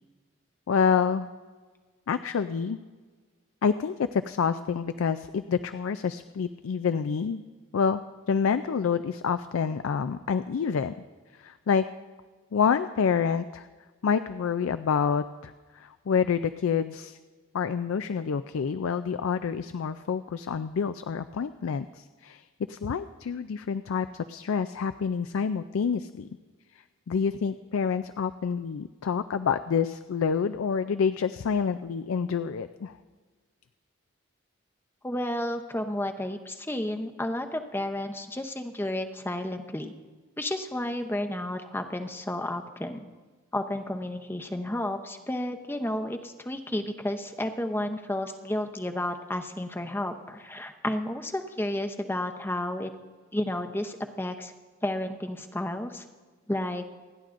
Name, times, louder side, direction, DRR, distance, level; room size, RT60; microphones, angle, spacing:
voice 1, 0.7-1.3 2.1-2.8 3.6-7.4 7.7-8.0 8.3-10.9 11.4-11.8 12.5-13.7 14.0-17.2 17.5-26.3 27.1-33.0, left 6 dB, 85° left, 11 dB, 0.4 m, -27 dB
voice 2, 35.0-39.9 40.4-43.0 43.5-52.9 53.3-54.5 54.8-56.0 56.5-56.8, left 1 dB, 10° left, 6 dB, 0.6 m, -32 dB
28.0 x 10.5 x 2.5 m, 1.4 s
head